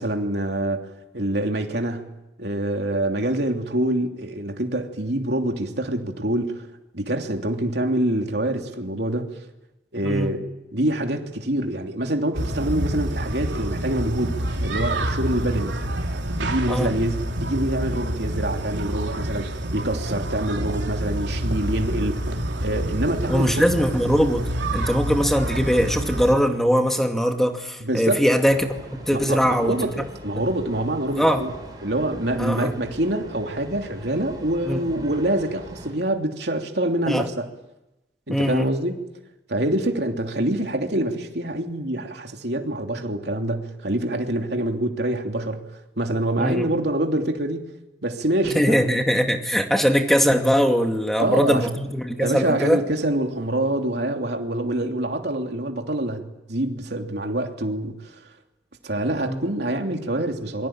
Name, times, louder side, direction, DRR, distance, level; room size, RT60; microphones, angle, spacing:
voice 1, 0.0-2.1 2.4-6.7 6.9-9.4 9.9-15.8 16.4-23.6 27.8-28.2 29.1-29.9 30.2-31.5 31.8-37.5 38.3-39.0 39.5-45.6 46.0-47.7 48.0-48.8 51.2-51.7 52.2-58.2 58.8-60.7, right 1 dB, 65° right, 3.1 m, -26 dB
sound 1, 12.3-26.4, right 1 dB, 80° right, 3.3 m, -28 dB
voice 2, 23.3-28.7 29.1-29.8 31.2-31.4 32.4-32.7 34.7-34.8 37.1-37.3 38.3-38.7 46.4-46.7 48.5-52.8 59.3-59.4, equal, ahead, 2.4 m, -21 dB
sound 2, 28.4-35.9, right 1 dB, 20° right, 7.0 m, -41 dB
27.0 x 23.5 x 9.0 m
head